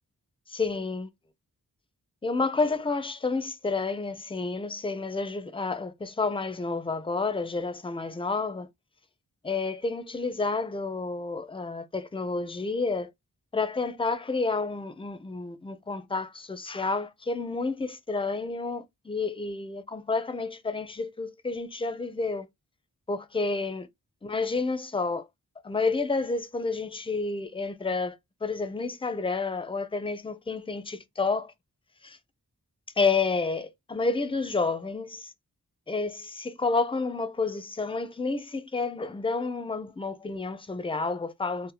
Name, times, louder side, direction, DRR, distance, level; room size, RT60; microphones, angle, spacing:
voice 1, 0.5-1.1 2.2-8.7 9.4-13.1 13.5-22.5 23.1-23.9 24.2-25.2 25.6-28.2 28.4-31.5 32.0-32.2 33.0-35.3 35.9-41.7, left 3 dB, 15° left, 0.4 m, -30 dB
2.7 x 2.1 x 4.0 m
wide cardioid pair, 75°, 36 cm